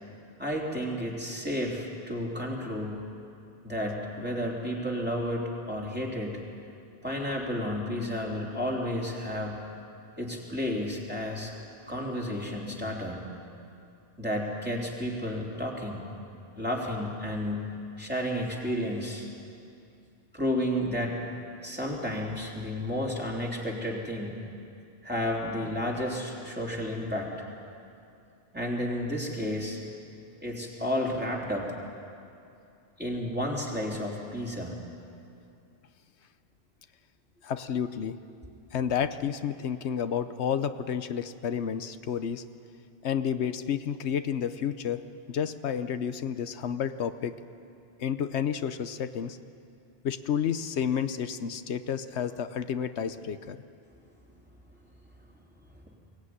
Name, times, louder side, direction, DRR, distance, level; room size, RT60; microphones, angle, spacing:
voice 1, 0.4-3.0 3.6-6.4 7.0-9.6 10.2-11.5 11.9-13.2 14.2-16.1 16.6-19.3 20.3-21.2 21.6-24.4 25.0-27.3 28.5-29.8 30.4-31.7 33.0-34.8, equal, 10° right, -3 dB, 3.6 m, -32 dB
voice 2, 37.4-38.2 38.7-42.4 43.0-45.0 45.3-47.3 48.0-49.4 50.0-53.6, left 8 dB, 85° left, 10 dB, 1.1 m, -30 dB
22.5 x 17.5 x 9.7 m, 2.5 s
omnidirectional pair, 1.1 m